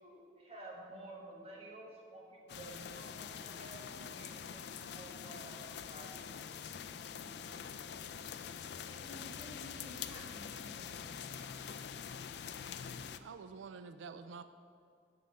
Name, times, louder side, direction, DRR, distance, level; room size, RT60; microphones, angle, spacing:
voice 1, 0.0-3.8 4.1-5.6 5.9-6.0, right 2 dB, 30° right, -2 dB, 1.6 m, -52 dB
sound 1, 2.5-13.2, left 7 dB, 65° left, 0.4 m, -45 dB
voice 2, 9.0-11.4, left 1 dB, 5° right, -8 dB, 2.5 m, -53 dB
voice 3, 13.2-14.4, right 5 dB, 90° right, 11 dB, 0.4 m, -48 dB
7.7 x 5.4 x 7.4 m, 2.3 s
head